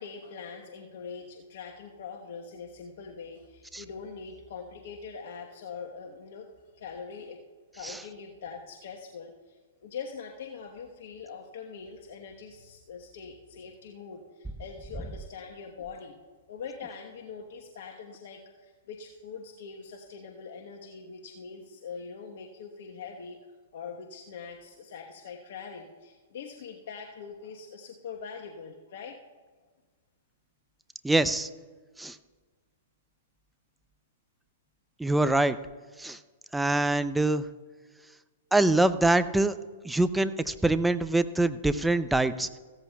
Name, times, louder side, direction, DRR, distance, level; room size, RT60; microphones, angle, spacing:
voice 1, 0.0-6.5 6.7-7.4 7.7-16.2 16.5-29.2, left 5 dB, 65° left, 1 dB, 1.1 m, -43 dB
voice 2, 31.0-31.5 32.0-32.2 35.0-35.6 36.0-36.2 36.5-37.5 38.5-39.6 39.8-42.5, right 2 dB, 5° right, 12 dB, 0.5 m, -24 dB
16.0 x 13.5 x 2.3 m, 1.4 s
hypercardioid pair, 125°, 0 cm